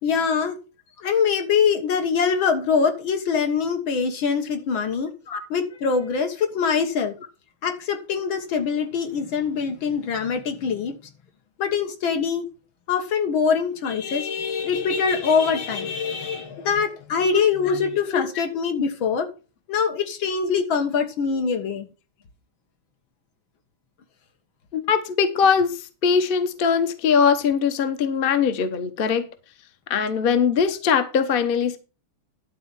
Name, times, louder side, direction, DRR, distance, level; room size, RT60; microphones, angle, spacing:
voice 1, 0.0-0.6 1.0-5.1 5.5-7.1 7.6-11.0 11.6-12.5 12.9-19.3 19.7-21.9, left 6 dB, 75° left, 2.2 m, -23 dB
voice 2, 24.7-29.3 29.9-31.8, left 6 dB, 40° left, 0.9 m, -21 dB
11.5 x 4.2 x 7.0 m
omnidirectional pair, 2.2 m